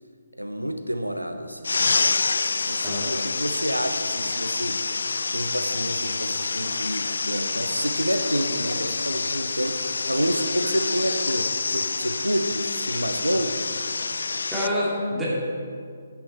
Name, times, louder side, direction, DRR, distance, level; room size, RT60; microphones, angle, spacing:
voice 1, 0.4-1.7 2.7-4.8 5.3-13.6, equal, 90° right, 7 dB, 0.7 m, -28 dB
sound 1, 1.6-14.7, left 4 dB, 60° left, 0.4 m, -27 dB
voice 2, 14.5-15.3, left 1 dB, 5° right, -8 dB, 2.6 m, -26 dB
10.0 x 9.2 x 4.4 m, 2.2 s
figure-of-eight pair, 140°, 0 cm